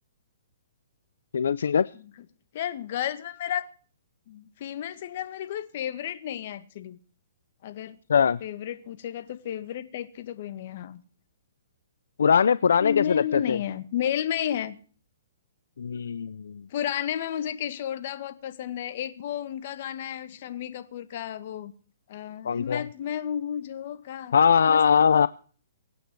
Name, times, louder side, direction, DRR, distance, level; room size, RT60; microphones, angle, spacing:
voice 1, 1.3-1.9 8.1-8.4 12.2-13.6 15.8-16.6 22.4-22.8 24.3-25.3, left 7 dB, 80° left, 0.6 m, -21 dB
voice 2, 2.5-3.7 4.3-7.0 7.6-8.0 8.4-11.0 12.8-14.8 16.7-21.7 22.1-24.3 24.7-25.3, left 10 dB, 50° left, 2.0 m, -32 dB
24.5 x 9.1 x 4.7 m
hypercardioid pair, 150°, 0 cm